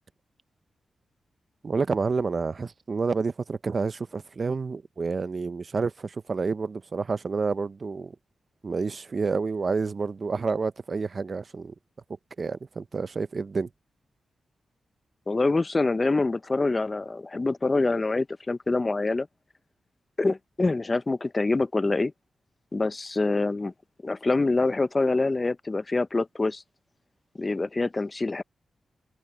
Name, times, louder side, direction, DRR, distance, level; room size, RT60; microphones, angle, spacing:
voice 1, 1.6-8.1 8.6-11.7 12.4-13.7, right 4 dB, 50° right, 0.6 m, -29 dB
voice 2, 15.3-19.3 20.2-22.1 22.7-23.7 24.0-26.6 27.4-28.4, left 3 dB, 30° left, 0.7 m, -25 dB
cardioid pair, 65°, 0 cm